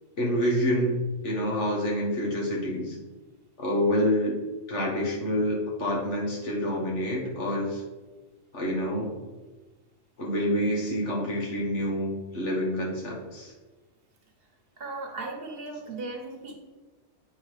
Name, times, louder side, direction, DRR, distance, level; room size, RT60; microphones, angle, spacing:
voice 1, 0.2-1.0 1.2-3.0 3.6-4.4 4.7-7.8 8.5-9.1 10.2-13.5, equal, 65° left, -2 dB, 1.8 m, -27 dB
voice 2, 14.8-16.5, right 3 dB, 50° right, 2 dB, 1.2 m, -37 dB
8.4 x 3.9 x 4.9 m, 1.2 s
omnidirectional pair, 1.3 m